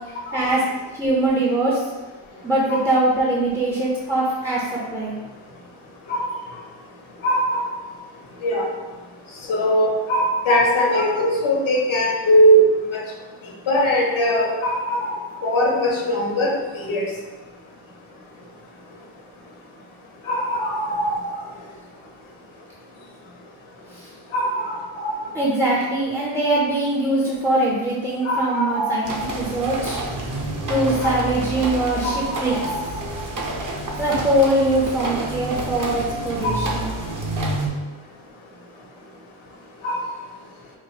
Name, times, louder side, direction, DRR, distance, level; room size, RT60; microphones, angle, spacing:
voice 1, 0.3-0.6 1.0-1.8 2.4-5.1 23.9-24.1 25.3-30.0 30.7-32.5 34.0-36.9, right 1 dB, 5° right, -5 dB, 0.5 m, -22 dB
voice 2, 7.2-7.6 8.4-8.6 9.5-12.6 12.9-13.0 13.7-15.1 15.4-16.5 16.9-17.0 20.3-21.3 24.3-25.1 28.2-29.2 31.0-31.1 32.0-32.1 32.4-32.7 36.4-36.7 39.8-40.0, equal, 70° left, -2 dB, 1.0 m, -20 dB
sound 1, 29.0-37.7, right 2 dB, 40° right, 0.7 m, -29 dB
4.7 x 2.4 x 2.8 m, 1.3 s
wide cardioid pair, 115°, 48 cm